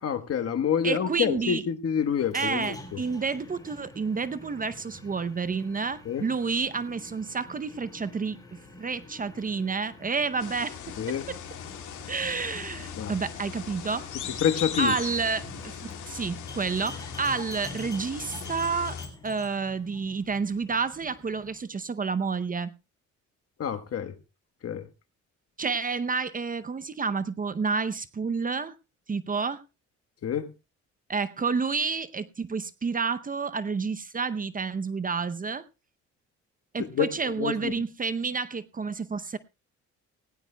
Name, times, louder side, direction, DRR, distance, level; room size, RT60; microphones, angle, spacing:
voice 1, 0.0-3.0 6.0-6.2 11.0-11.2 13.0-13.1 14.4-14.9 23.6-24.1 24.6-24.8 30.2-30.5 36.9-37.1 37.4-37.7, left 8 dB, 50° left, 1.4 m, -27 dB
voice 2, 0.8-1.6 2.3-8.4 8.8-10.8 11.3-11.4 12.1-14.1 14.8-19.0 19.2-22.7 25.6-28.7 29.1-29.6 31.1-35.6 36.7-39.4, right 5 dB, 30° right, 0.7 m, -30 dB
sound 1, 2.2-21.6, left 2 dB, 10° left, 4.5 m, -47 dB
sound 2, 10.4-19.1, left 8 dB, 75° left, 2.3 m, -39 dB
18.0 x 17.0 x 2.2 m
cardioid pair, 90°, 30 cm